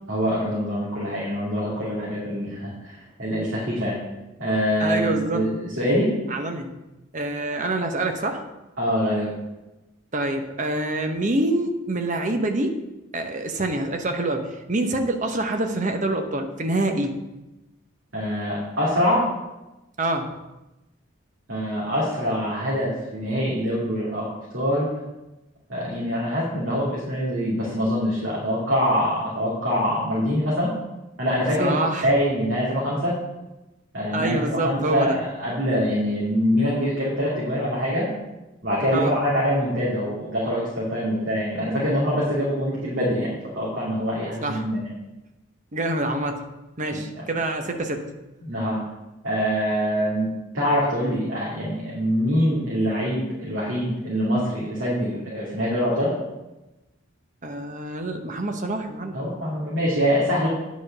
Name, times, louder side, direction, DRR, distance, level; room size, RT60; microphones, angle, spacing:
voice 1, 0.1-4.0 4.4-6.1 8.8-9.3 18.1-19.3 21.5-24.3 24.5-24.9 25.7-30.7 31.2-33.2 33.9-38.1 38.6-44.9 46.9-47.2 48.4-48.8 49.2-50.3 50.5-56.1 59.1-60.5, equal, 60° right, -8 dB, 2.7 m, -24 dB
voice 2, 4.8-5.5 6.3-6.7 7.1-8.4 10.1-12.8 13.1-17.1 20.0-20.3 31.6-32.1 34.1-35.2 38.9-39.1 44.4-44.7 45.7-46.4 46.8-48.1 57.4-59.2, right 2 dB, 35° right, 5 dB, 0.9 m, -26 dB
9.5 x 5.1 x 6.6 m, 1.0 s
head